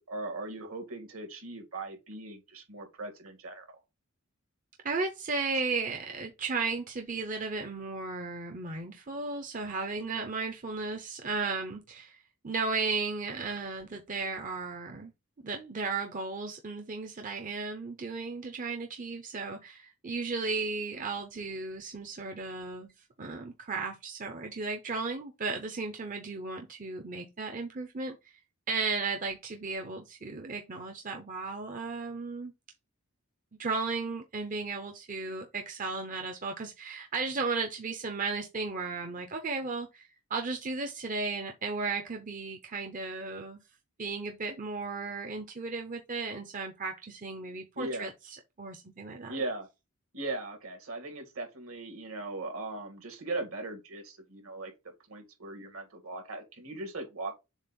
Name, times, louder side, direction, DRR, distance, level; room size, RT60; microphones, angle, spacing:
voice 1, 0.0-3.7 47.8-48.1 49.3-49.7 50.1-54.7 55.1-57.3, right 2 dB, 70° right, 2.1 m, -39 dB
voice 2, 4.8-15.1 15.4-22.9 23.2-28.2 28.7-32.5 33.6-43.6 44.0-48.1 48.6-49.4, right 4 dB, 35° right, 0.7 m, -35 dB
7.2 x 2.5 x 5.3 m
head